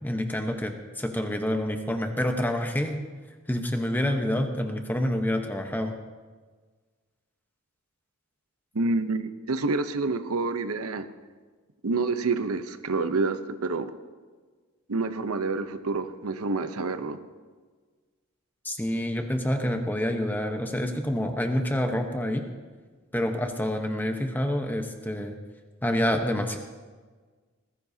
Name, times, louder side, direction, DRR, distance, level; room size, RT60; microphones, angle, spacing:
voice 1, 0.0-3.0 3.5-5.9 18.6-22.4 23.1-25.4 25.8-26.6, left 1 dB, 10° left, 4 dB, 1.0 m, -27 dB
voice 2, 8.7-11.1 11.8-13.9 14.9-17.2, right 3 dB, 90° right, 10 dB, 0.8 m, -28 dB
19.5 x 15.5 x 2.8 m, 1.4 s
head